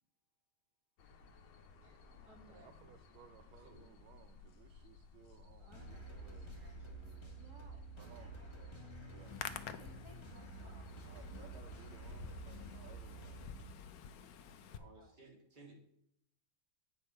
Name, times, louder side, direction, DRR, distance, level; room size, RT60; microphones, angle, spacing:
sound 1, 1.0-12.0, left 4 dB, 65° left, 1.5 m, -59 dB
voice 1, 1.8-2.9 5.6-6.8 7.4-7.9 8.2-12.1 14.6-15.2, right 2 dB, 50° right, 0 dB, 2.3 m, -64 dB
voice 2, 2.5-7.4 8.0-8.4 9.1-9.3 11.1-13.5 14.2-14.3, right 9 dB, 80° right, 8 dB, 1.4 m, -61 dB
sound 2, 5.7-13.6, right 3 dB, 20° left, 0.8 m, -50 dB
Hands, 9.1-14.8, left 8 dB, 80° left, 0.8 m, -50 dB
voice 3, 14.7-15.7, right 3 dB, 25° right, -2 dB, 2.2 m, -58 dB
8.4 x 5.5 x 4.3 m, 0.71 s
omnidirectional pair, 2.3 m